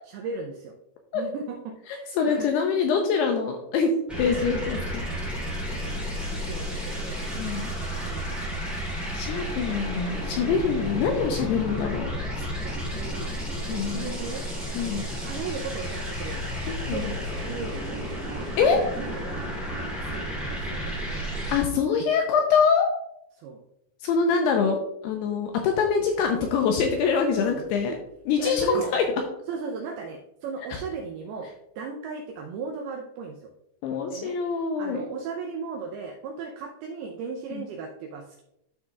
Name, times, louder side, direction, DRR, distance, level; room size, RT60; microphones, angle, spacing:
voice 1, 0.1-0.7 1.1-2.5 5.8-7.2 7.9-8.7 10.7-11.0 11.6-11.8 12.6-13.3 13.6-14.4 14.8-16.6 16.9-18.5 19.0-19.5 19.8-21.6 23.3-23.6 27.4-28.0 28.4-29.0 29.5-31.5 31.8-33.5 34.1-34.3 34.8-38.4, right 5 dB, 85° right, 2 dB, 2.2 m, -37 dB
voice 2, 2.2-3.9 4.2-5.1 7.4-7.7 9.1-12.1 12.4-12.5 13.7-14.1 14.7-15.0 16.7-17.2 18.6-18.8 21.5-22.9 24.0-24.8 25.0-27.9 28.3-29.1 30.7-30.8 33.8-35.0 37.5-37.6, left 6 dB, 80° left, 3 dB, 2.4 m, -24 dB
Vital ambiant sound scape, 4.1-21.6, equal, ahead, 1.8 m, -32 dB
12.0 x 5.9 x 2.3 m, 0.81 s
omnidirectional pair, 5.3 m